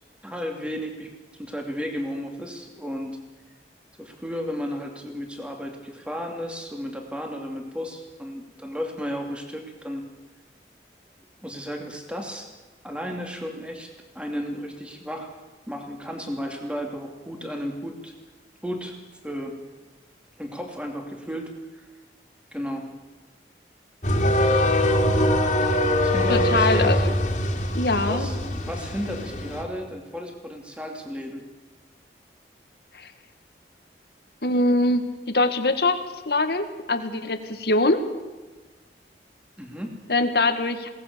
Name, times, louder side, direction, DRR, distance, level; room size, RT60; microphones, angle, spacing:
voice 1, 0.2-1.1 1.4-3.2 4.0-10.0 11.4-12.5 12.8-13.9 14.1-15.4 15.7-18.1 18.6-19.0 19.2-19.5 20.4-21.9 22.5-22.9 25.7-26.9 28.0-31.4 39.6-40.0, equal, 5° right, 3 dB, 2.7 m, -33 dB
sound 1, 24.0-29.6, left 1 dB, 40° left, 2.9 m, -22 dB
voice 2, 26.3-27.1 27.7-28.3 32.9-33.1 34.4-36.0 36.2-38.1 40.1-40.9, left 2 dB, 65° left, 9 dB, 1.8 m, -23 dB
22.0 x 18.0 x 6.9 m, 1.2 s
head